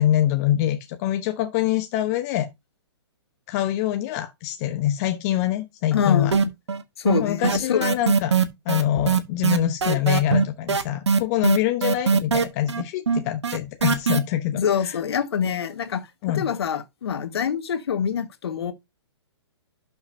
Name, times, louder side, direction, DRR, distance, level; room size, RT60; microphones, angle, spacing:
voice 1, 0.0-2.5 3.5-6.3 7.2-8.4 8.6-14.9 16.2-16.5, left 12 dB, 35° left, 1.0 m, -24 dB
voice 2, 5.9-6.4 7.0-7.9 8.2-8.4 14.5-18.7, left 8 dB, 60° left, 1.7 m, -25 dB
sound 1, 6.3-6.8 7.1-14.2, right 6 dB, 75° right, 1.3 m, -21 dB
12.0 x 5.9 x 2.8 m
figure-of-eight pair, 125°, 15 cm